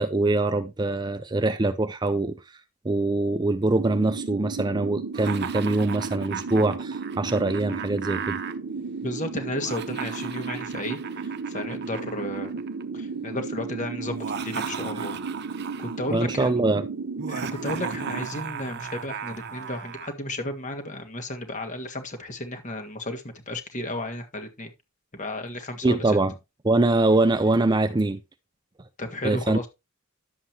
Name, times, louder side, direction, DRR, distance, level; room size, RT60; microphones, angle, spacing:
voice 1, 0.0-2.6 2.8-8.4 15.0-15.1 16.1-16.9 25.8-26.3 26.6-28.2 29.2-29.7, right 2 dB, 20° right, 0.5 m, -23 dB
sound 1, 3.7-18.3, right 4 dB, 75° right, 0.9 m, -34 dB
Laughter, 5.1-8.5 9.5-12.8 14.1-16.1 17.2-20.1, right 7 dB, 50° right, 0.8 m, -36 dB
voice 2, 9.0-12.6 12.9-15.2 15.8-16.5 17.3-24.7 25.1-26.0 29.0-29.7, left 1 dB, 35° left, 1.7 m, -33 dB
11.0 x 7.6 x 2.9 m
head